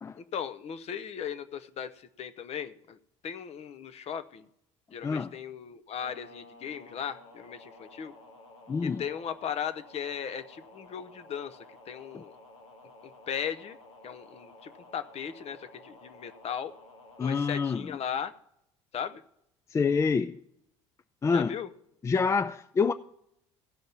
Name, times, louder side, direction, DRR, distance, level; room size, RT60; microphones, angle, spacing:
voice 1, 0.2-3.0 3.2-4.5 4.9-8.1 8.8-11.6 11.9-12.3 13.0-13.8 14.0-16.7 17.2-18.3 18.9-19.2 21.3-21.7, left 8 dB, 40° left, 0.8 m, -37 dB
sound 1, 6.0-17.8, left 2 dB, 85° left, 1.5 m, -53 dB
voice 2, 8.7-9.0 17.2-18.0 19.7-20.4 21.2-21.5 22.0-22.9, left 5 dB, 20° left, 0.4 m, -27 dB
15.5 x 5.2 x 7.1 m
figure-of-eight pair, 65°, 16 cm